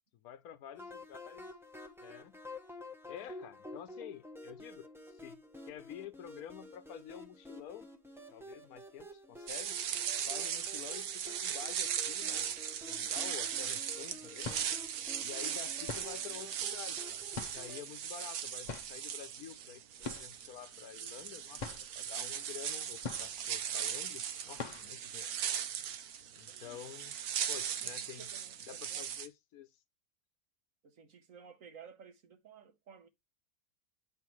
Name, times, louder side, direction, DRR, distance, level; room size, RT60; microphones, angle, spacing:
voice 1, 0.1-1.5 2.0-2.4 3.1-5.4 5.7-7.9 8.3-9.8 10.3-12.5 12.9-14.5 15.2-25.3 26.4-27.1 27.5-28.3 28.7-29.7, left 10 dB, 85° left, 1.2 m, -49 dB
sound 1, 0.7-17.8, left 1 dB, ahead, 0.7 m, -51 dB
sound 2, 9.5-29.3, right 9 dB, 90° right, 1.3 m, -38 dB
sound 3, 13.5-13.6 14.2-14.9 15.8-16.3 17.3-17.8 18.6-19.0 20.0-20.4 20.7-20.8 21.2-21.3 21.6-22.0 23.0-23.6 24.0-24.1 24.5-25.0, left 4 dB, 40° left, 0.8 m, -43 dB
voice 2, 26.5-26.8 27.7-29.1 30.8-33.1, right 6 dB, 65° right, 1.4 m, -55 dB
8.5 x 5.6 x 3.1 m
omnidirectional pair, 1.5 m